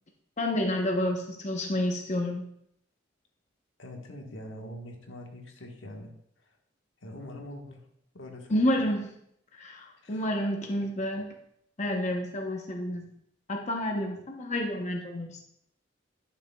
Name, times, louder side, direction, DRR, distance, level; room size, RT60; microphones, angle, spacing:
voice 1, 0.4-2.5 8.5-9.1 9.5-11.4 11.8-13.1 13.5-15.4, left 1 dB, 40° left, 1 dB, 0.8 m, -29 dB
voice 2, 3.8-6.1 7.0-7.8 8.1-8.9 10.0-10.2 13.1-13.2, left 1 dB, 80° left, 2 dB, 1.3 m, -43 dB
11.0 x 6.5 x 2.3 m, 0.72 s
head